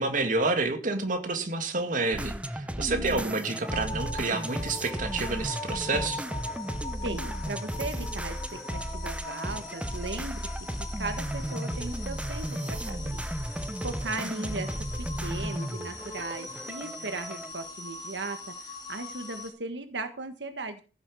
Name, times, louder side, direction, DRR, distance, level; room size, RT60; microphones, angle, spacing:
voice 1, 0.0-6.2, right 3 dB, 50° right, 6 dB, 2.1 m, -29 dB
sound 1, 2.1-17.5, right 1 dB, 5° right, 0.8 m, -35 dB
voice 2, 2.9-3.4 7.0-10.5 11.0-13.2 13.5-13.6 13.8-14.7 15.0-20.8, right 2 dB, 80° right, 8 dB, 1.6 m, -37 dB
sound 2, 3.6-19.5, left 3 dB, 25° left, 4.0 m, -42 dB
15.5 x 7.6 x 6.3 m, 0.35 s
head